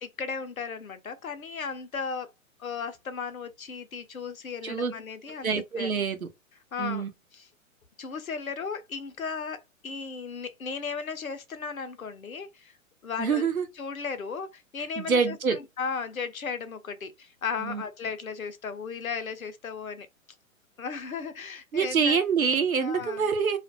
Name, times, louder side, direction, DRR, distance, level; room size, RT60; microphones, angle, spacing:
voice 1, 0.0-2.3 2.6-5.9 6.7-7.1 7.3-7.5 8.0-12.7 13.0-13.4 13.8-20.1 20.8-22.2 22.8-23.3, left 5 dB, 80° left, 0.7 m, -35 dB
voice 2, 5.4-6.3 6.8-7.1 13.2-13.6 14.8-15.6 17.6-17.8 21.7-23.6, right 6 dB, 80° right, 0.8 m, -26 dB
2.4 x 2.1 x 2.5 m
figure-of-eight pair, 120°, 41 cm